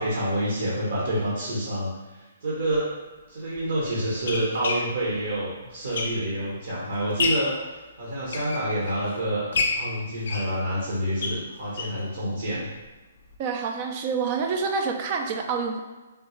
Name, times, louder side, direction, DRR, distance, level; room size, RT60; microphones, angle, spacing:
voice 1, 0.0-1.9 2.4-2.9 3.3-7.5 8.0-9.4 9.7-12.7, right 1 dB, 70° right, -6 dB, 0.9 m, -27 dB
sound 1, 2.6-2.8 3.6-6.5 6.9-7.6 8.1-9.1 9.5-12.1 12.4-12.5 12.8-12.9 13.3-13.4, left 4 dB, 65° left, 0.4 m, -30 dB
voice 2, 13.4-15.8, right 5 dB, 35° right, 4 dB, 0.3 m, -27 dB
3.5 x 2.3 x 3.0 m, 1.2 s
hypercardioid pair, 155°, 0 cm